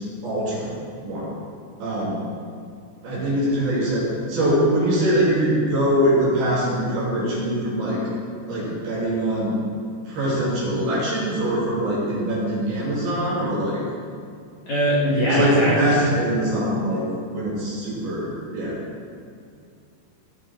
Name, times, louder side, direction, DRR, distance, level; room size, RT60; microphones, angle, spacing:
voice 1, 0.2-0.7 1.0-1.3 1.8-2.3 3.0-8.0 8.5-9.5 10.1-13.8 15.0-17.0 17.3-18.8, right 1 dB, 60° right, -7 dB, 4.7 m, -23 dB
voice 2, 14.7-16.0, equal, 50° left, -8 dB, 2.7 m, -21 dB
16.5 x 7.2 x 4.5 m, 2.4 s
omnidirectional pair, 5.2 m